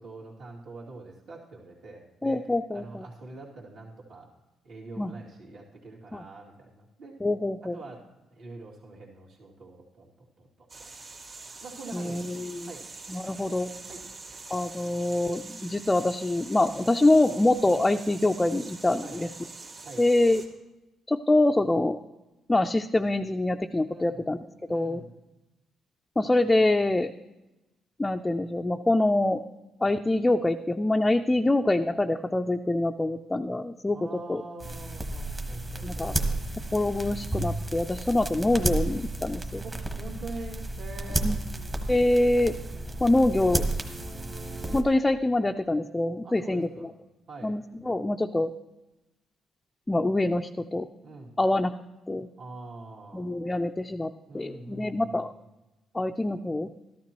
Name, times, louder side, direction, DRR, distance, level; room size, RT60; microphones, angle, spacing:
voice 1, 0.0-2.4 2.7-4.3 4.6-7.2 7.6-8.0 8.3-10.9 11.6-12.2 12.7-12.9 13.9-14.0 16.7-16.8 17.6-17.8 19.0-19.2 19.8-20.0 23.9-24.3 24.7-25.1 33.9-36.5 39.6-41.3 46.2-46.9 47.3-47.5 51.0-51.3 52.4-53.3 54.3-55.1, right 2 dB, 65° right, -3 dB, 2.5 m, -44 dB
voice 2, 2.2-3.1 5.0-5.1 6.1-6.2 7.2-7.8 11.9-12.7 13.1-13.7 14.5-19.3 20.0-20.4 21.1-22.0 22.5-24.4 24.7-25.0 26.2-27.1 28.0-29.4 29.8-34.4 35.8-36.1 36.7-39.6 41.2-41.4 41.9-42.5 43.0-43.7 44.7-46.9 47.4-48.5 49.9-50.9 51.4-51.7 52.1-52.3 53.1-55.3 55.9-56.7, left 2 dB, 15° left, 4 dB, 0.4 m, -25 dB
Fountain Atmosphere, 10.7-20.5, right 3 dB, 50° right, 1.9 m, -44 dB
sound 1, 34.6-44.8, right 2 dB, 25° right, 1.2 m, -32 dB
13.5 x 12.5 x 3.0 m, 1.0 s
cardioid pair, 90°, 0 cm